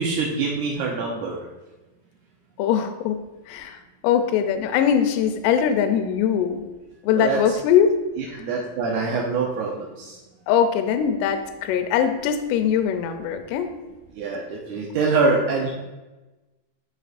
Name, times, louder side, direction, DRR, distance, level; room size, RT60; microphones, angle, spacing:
voice 1, 0.0-1.4 7.1-7.6 8.2-10.2 14.2-15.7, right 4 dB, 80° right, -2 dB, 1.7 m, -24 dB
voice 2, 2.6-3.2 3.5-3.8 4.0-6.7 7.0-8.0 8.3-8.4 10.5-13.7, left 8 dB, 80° left, 8 dB, 2.0 m, -21 dB
10.5 x 4.7 x 2.5 m, 1.1 s
omnidirectional pair, 4.3 m